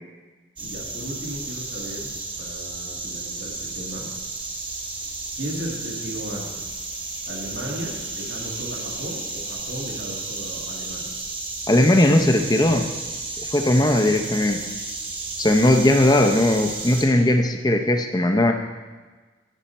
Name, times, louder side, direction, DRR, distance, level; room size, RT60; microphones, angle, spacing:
sound 1, 0.6-17.0, right 3 dB, 25° right, 1.2 m, -33 dB
voice 1, 0.6-2.1 2.4-4.1 5.3-6.7 7.3-11.1, equal, 75° right, -2 dB, 1.8 m, -35 dB
voice 2, 11.7-12.9 13.4-14.6 15.4-18.5, left 1 dB, 20° left, 5 dB, 0.6 m, -18 dB
14.5 x 5.6 x 4.2 m, 1.3 s
head